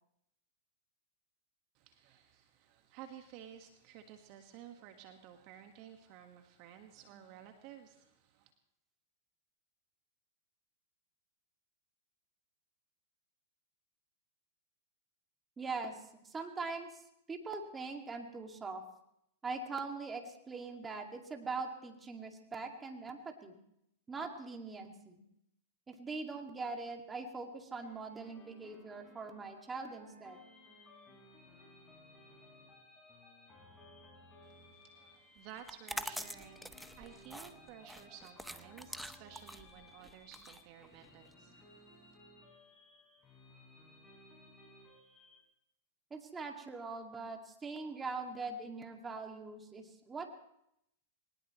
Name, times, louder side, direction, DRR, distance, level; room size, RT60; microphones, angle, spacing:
voice 1, 1.9-8.1 34.9-41.7, right 10 dB, 45° right, 6 dB, 1.7 m, -53 dB
voice 2, 15.6-17.0 17.3-18.8 19.4-23.6 24.1-25.2 25.9-30.4 46.1-50.4, right 4 dB, 15° right, 3 dB, 2.4 m, -42 dB
sound 1, 27.8-45.4, left 2 dB, 15° left, 5.6 m, -60 dB
sound 2, 35.6-41.3, equal, ahead, 0.8 m, -45 dB
22.0 x 19.5 x 3.2 m, 0.78 s
hypercardioid pair, 110°, 0 cm